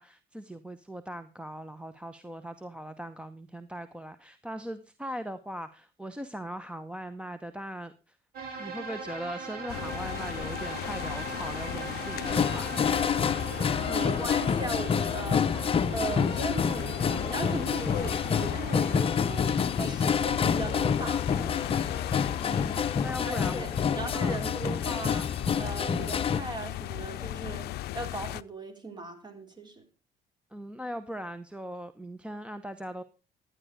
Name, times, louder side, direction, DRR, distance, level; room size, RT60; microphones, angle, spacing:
voice 1, 0.0-8.2 8.6-12.8 22.4-23.8 24.1-24.4 30.5-33.0, equal, 5° right, 7 dB, 0.8 m, -40 dB
sound 1, 8.3-19.0, right 4 dB, 65° right, 4.8 m, -40 dB
sound 2, 9.7-28.4, left 16 dB, 70° left, 0.5 m, -37 dB
sound 3, 12.2-26.4, left 7 dB, 35° left, 0.8 m, -28 dB
voice 2, 13.5-21.6 23.2-25.3 25.6-29.8, right 3 dB, 25° right, 6 dB, 3.2 m, -38 dB
12.5 x 10.0 x 5.0 m, 0.34 s
cardioid pair, 110°, 17 cm